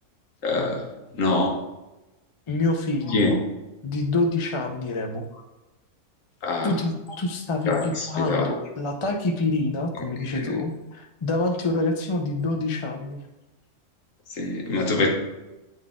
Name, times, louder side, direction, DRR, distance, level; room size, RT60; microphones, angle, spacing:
voice 1, 0.4-0.8 1.2-1.5 3.1-3.3 6.4-6.7 7.7-8.5 10.3-10.4 14.4-15.1, left 3 dB, 75° left, 1 dB, 1.5 m, -24 dB
voice 2, 2.5-3.3 3.8-5.2 6.6-13.2 15.0-15.1, left 2 dB, 40° left, 3 dB, 0.4 m, -26 dB
9.7 x 4.0 x 3.7 m, 1.0 s
omnidirectional pair, 1.4 m